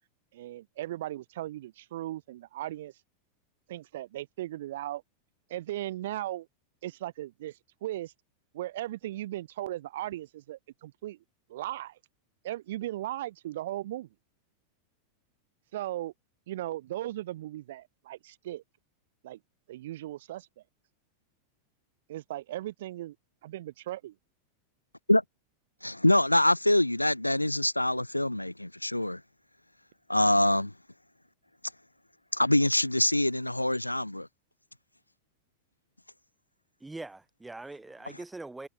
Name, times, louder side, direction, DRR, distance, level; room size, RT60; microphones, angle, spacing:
voice 1, 0.3-2.9 3.7-5.0 5.5-6.5 6.8-8.1 8.5-11.2 11.5-12.0 12.4-14.1 15.7-16.1 16.5-18.6 19.2-19.4 19.7-20.5 22.1-23.1 23.4-24.1, right 14 dB, 55° right, 1.0 m, -37 dB
voice 2, 25.8-29.2 30.1-30.7 32.3-34.3, left 1 dB, 85° left, 1.5 m, -25 dB
voice 3, 36.8-38.7, right 2 dB, 10° right, 3.7 m, -42 dB
figure-of-eight pair, 90°, 0 cm